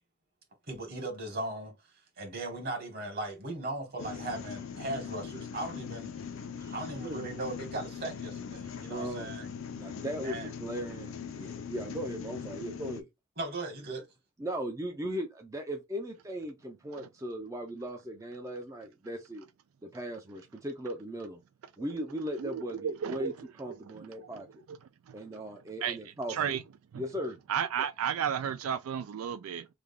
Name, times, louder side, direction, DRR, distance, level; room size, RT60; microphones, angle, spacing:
voice 1, 0.7-1.7 2.2-6.1 6.7-9.5 10.2-10.5 13.4-14.1, right 2 dB, 50° right, 1.7 m, -38 dB
sound 1, 4.0-13.0, left 6 dB, 75° left, 0.5 m, -41 dB
voice 2, 6.6-7.2 8.9-9.3 9.8-13.1 14.4-19.5 19.8-21.4 21.8-24.6 25.1-26.3 27.0-27.4, equal, 15° right, 0.4 m, -38 dB
voice 3, 22.4-23.3 23.7-24.4 24.7-24.8 25.1-25.4 25.8-26.6 26.9-27.0 27.5-29.7, right 8 dB, 90° right, 0.3 m, -34 dB
3.3 x 2.3 x 3.6 m
head